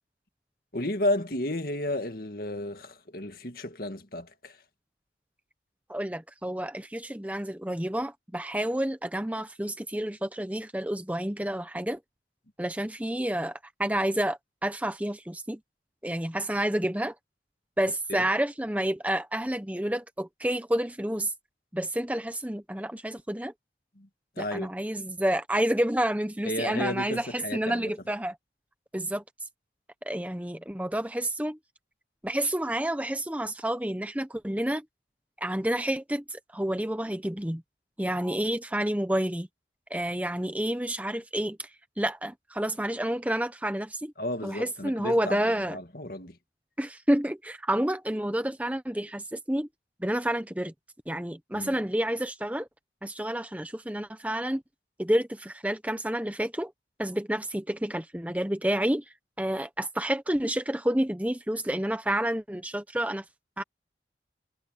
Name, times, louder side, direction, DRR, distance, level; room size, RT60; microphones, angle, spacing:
voice 1, 0.7-4.6 18.1-18.2 24.0-24.1 24.4-24.7 26.5-27.9 44.2-45.4 45.7-46.4 51.5-51.8, left 1 dB, 50° left, 2.1 m, -32 dB
voice 2, 5.9-12.0 12.6-15.6 16.0-17.1 17.8-21.3 21.7-23.5 24.4-28.4 28.9-29.2 30.0-31.6 32.2-34.8 35.4-37.6 38.0-39.5 39.9-41.7 42.0-44.1 44.4-45.8 46.8-49.7 50.0-50.7 51.1-52.7 53.0-54.6 55.0-56.7 57.0-59.0 59.4-63.2 63.6-63.7, right 1 dB, 10° right, 0.9 m, -29 dB
head